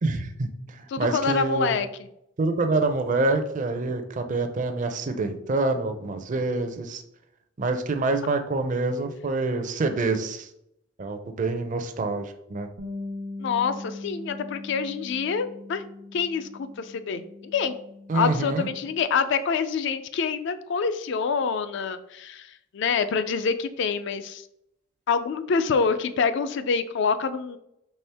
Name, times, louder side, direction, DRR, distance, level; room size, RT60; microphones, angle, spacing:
voice 1, 0.0-0.5 0.7-1.8 2.4-7.0 7.6-10.5 11.0-12.7 18.1-18.7, right 3 dB, 40° right, 7 dB, 0.5 m, -26 dB
voice 2, 0.9-2.1 13.4-15.8 16.1-17.8 18.1-24.4 25.1-27.6, left 5 dB, 60° left, 11 dB, 0.4 m, -26 dB
Bass guitar, 12.8-19.0, left 2 dB, 85° right, 0.8 m, -40 dB
4.3 x 3.4 x 3.4 m, 0.78 s
head